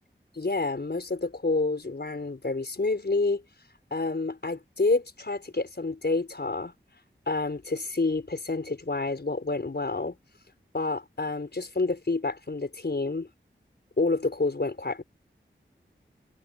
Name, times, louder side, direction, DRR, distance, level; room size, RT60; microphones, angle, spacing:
voice 1, 0.3-3.4 3.9-6.7 7.3-10.1 10.7-13.3 14.0-15.0, left 3 dB, 55° left, 4.8 m, -28 dB
wide cardioid pair, 70°, 20 cm